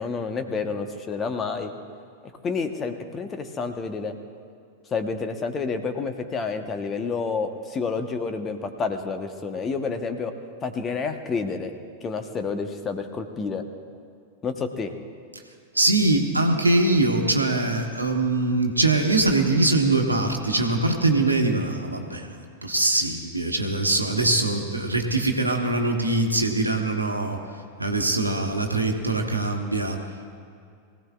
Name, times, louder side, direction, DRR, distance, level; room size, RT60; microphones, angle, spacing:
voice 1, 0.0-1.7 2.4-4.1 4.9-10.3 10.6-11.7 12.0-13.6 14.4-14.9, left 4 dB, 25° left, 7 dB, 1.1 m, -29 dB
voice 2, 15.7-27.4 27.8-30.0, right 2 dB, 85° right, 3 dB, 1.4 m, -23 dB
23.0 x 16.5 x 2.4 m, 2.3 s
figure-of-eight pair, 90°, 0 cm